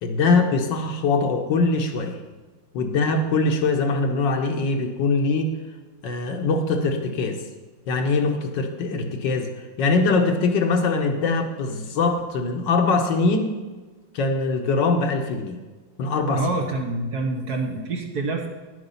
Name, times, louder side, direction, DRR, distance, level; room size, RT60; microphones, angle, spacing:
voice 1, 0.0-2.2 2.7-5.5 6.0-7.4 7.9-9.5 9.8-13.5 14.1-15.6 16.0-16.5, left 3 dB, 65° left, 5 dB, 1.5 m, -22 dB
voice 2, 16.3-18.5, right 2 dB, 55° right, 3 dB, 1.4 m, -26 dB
10.5 x 8.1 x 5.5 m, 1.3 s
omnidirectional pair, 2.3 m